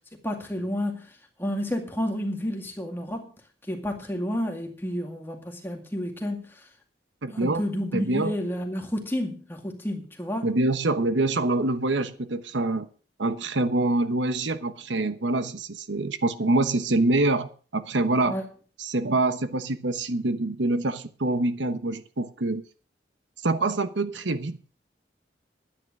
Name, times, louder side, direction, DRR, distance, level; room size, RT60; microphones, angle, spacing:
voice 1, 0.2-1.1 1.4-3.3 3.7-6.7 7.3-10.5 18.2-18.4, equal, 10° left, 2.2 m, -30 dB
voice 2, 7.2-7.6 7.9-8.3 10.4-12.9 13.2-18.4 18.8-22.6 23.4-24.6, right 2 dB, 85° right, 1.1 m, -25 dB
11.5 x 9.6 x 6.1 m
head